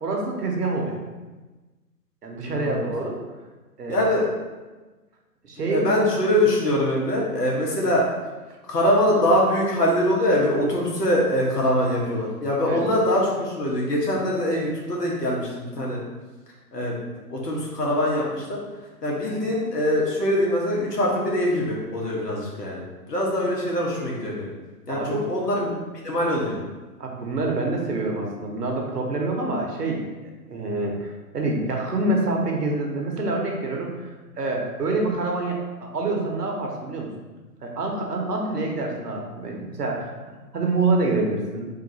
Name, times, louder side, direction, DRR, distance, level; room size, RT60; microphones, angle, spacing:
voice 1, 0.0-1.0 2.2-3.2 3.8-4.0 5.4-5.9 12.6-12.8 24.9-25.2 27.0-30.1 30.5-37.1 37.6-41.7, right 2 dB, 75° right, 0 dB, 1.0 m, -26 dB
voice 2, 2.5-2.9 3.9-4.3 5.6-8.0 8.7-16.0 16.7-17.0 17.3-18.6 19.0-22.8 23.1-24.5 24.9-25.7 26.0-26.6, left 1 dB, 80° left, -3 dB, 1.4 m, -23 dB
3.7 x 2.6 x 4.0 m, 1.2 s
figure-of-eight pair, 130°, 47 cm